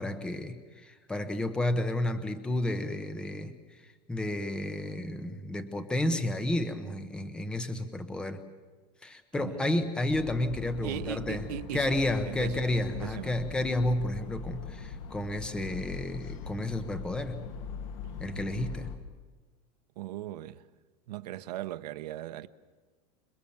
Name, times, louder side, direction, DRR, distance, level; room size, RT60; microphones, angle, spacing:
voice 1, 0.0-3.8 4.1-8.4 9.0-11.4 11.7-17.5 18.2-18.9, left 1 dB, 5° left, 0.9 m, -31 dB
voice 2, 9.4-9.8 10.8-11.9 12.3-12.6 12.9-13.4 20.0-20.6 21.1-22.5, right 13 dB, 70° right, 1.0 m, -38 dB
sound 1, 10.1-19.0, left 5 dB, 50° left, 2.2 m, -41 dB
27.5 x 21.0 x 7.1 m
supercardioid pair, 180°, 21 cm